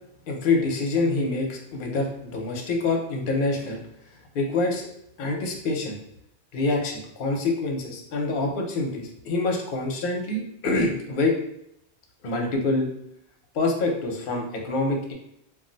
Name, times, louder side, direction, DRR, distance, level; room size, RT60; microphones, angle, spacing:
voice 1, 0.3-3.8 4.3-4.9 5.2-6.0 6.5-11.3 12.2-12.9 13.5-15.1, left 3 dB, 55° left, 1 dB, 0.7 m, -26 dB
2.4 x 2.1 x 3.8 m, 0.74 s
omnidirectional pair, 1.2 m